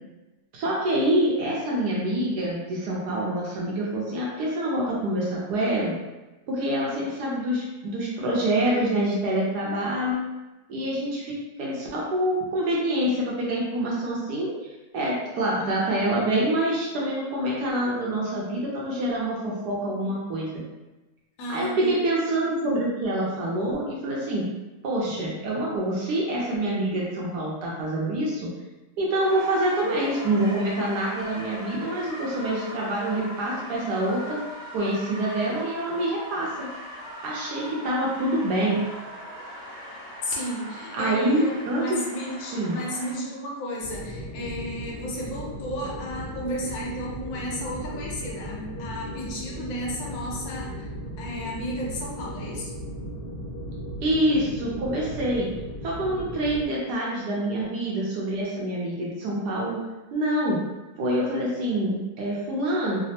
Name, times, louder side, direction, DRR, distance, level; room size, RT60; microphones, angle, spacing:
voice 1, 0.5-6.0 6.5-10.2 10.7-20.7 21.5-24.5 24.8-28.5 29.0-34.4 34.7-36.7 37.2-38.8 40.9-42.0 42.5-42.8 54.0-55.5 55.8-59.8 60.1-60.6 61.0-63.0, right 1 dB, 70° right, -4 dB, 1.0 m, -26 dB
voice 2, 21.4-21.9 40.2-50.9 51.2-52.7, equal, 75° left, -3 dB, 1.4 m, -33 dB
sound 1, 29.2-43.1, equal, 50° right, 1.1 m, -40 dB
sound 2, 43.8-56.7, equal, 40° left, 0.9 m, -36 dB
3.3 x 2.0 x 2.7 m, 1.1 s
omnidirectional pair, 2.0 m